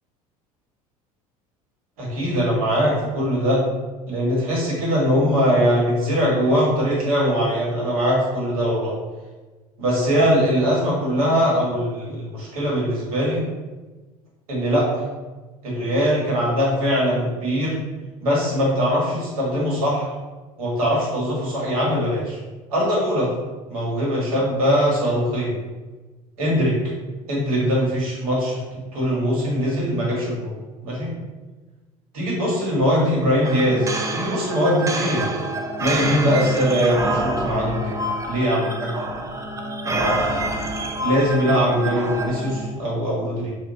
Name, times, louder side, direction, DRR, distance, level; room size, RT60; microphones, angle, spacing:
voice 1, 2.0-3.6 4.1-8.9 9.8-13.4 14.5-15.0 15.6-17.8 18.2-20.1 20.6-22.4 22.7-23.3 23.7-25.5 26.4-26.8 27.3-28.6 28.9-30.5 30.8-31.1 32.1-35.3 35.8-37.9 38.2-38.9 39.8-40.4 41.0-43.5, equal, 75° right, -4 dB, 1.3 m, -21 dB
sound 1, 33.4-42.7, right 2 dB, 15° right, 0.4 m, -27 dB
2.8 x 2.2 x 3.7 m, 1.2 s
figure-of-eight pair, 70°, 19 cm